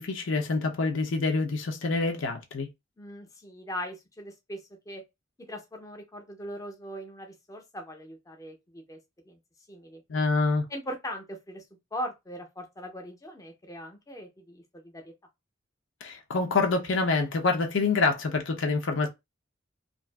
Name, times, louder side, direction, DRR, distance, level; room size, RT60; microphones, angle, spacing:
voice 1, 0.0-2.7 10.1-10.6 16.0-19.1, left 3 dB, 80° left, 0.6 m, -26 dB
voice 2, 3.0-4.6 4.9-5.0 5.5-9.0 9.3-9.4 9.7-10.0 10.7-11.6 11.9-15.1, equal, 15° left, 0.5 m, -40 dB
2.5 x 2.3 x 2.2 m
head